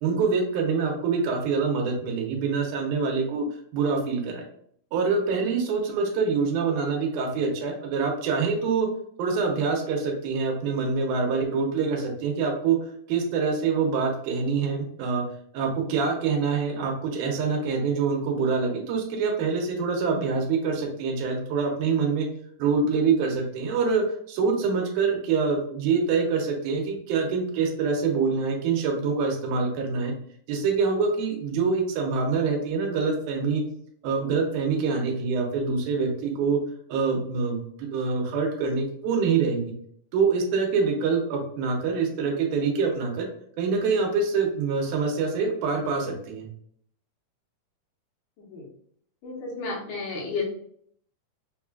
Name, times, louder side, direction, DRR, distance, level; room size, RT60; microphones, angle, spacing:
voice 1, 0.0-3.5 3.7-4.4 4.9-8.9 9.2-15.2 15.5-22.3 22.6-30.1 30.5-33.6 34.0-36.6 36.9-39.7 40.1-43.3 43.6-46.5, right 5 dB, 80° right, 2 dB, 2.1 m, -25 dB
voice 2, 48.4-48.7 49.2-50.4, left 4 dB, 75° left, -3 dB, 2.4 m, -32 dB
5.4 x 2.3 x 2.2 m, 0.64 s
omnidirectional pair, 3.8 m